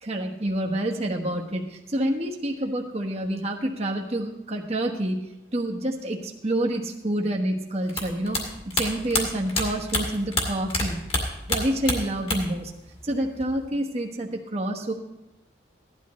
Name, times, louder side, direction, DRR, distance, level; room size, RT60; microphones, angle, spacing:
voice 1, 0.0-11.0 11.5-12.7 13.0-14.9, right 1 dB, 35° right, 0 dB, 1.2 m, -28 dB
sound 1, 7.9-10.8 11.1-12.6 12.9-13.6, left 2 dB, 30° left, 2.1 m, -27 dB
16.5 x 12.0 x 3.1 m, 0.93 s
head